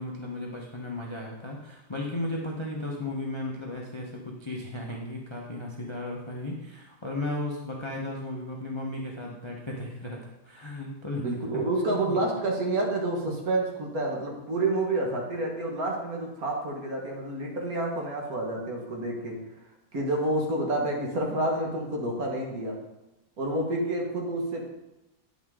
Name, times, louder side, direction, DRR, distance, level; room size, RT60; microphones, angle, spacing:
voice 1, 0.0-11.2 11.5-12.2, left 1 dB, 30° left, -2 dB, 0.5 m, -35 dB
voice 2, 11.2-19.4 19.9-22.8 23.4-24.7, right 2 dB, 50° right, -1 dB, 1.7 m, -29 dB
9.4 x 5.8 x 3.7 m, 0.96 s
omnidirectional pair, 2.1 m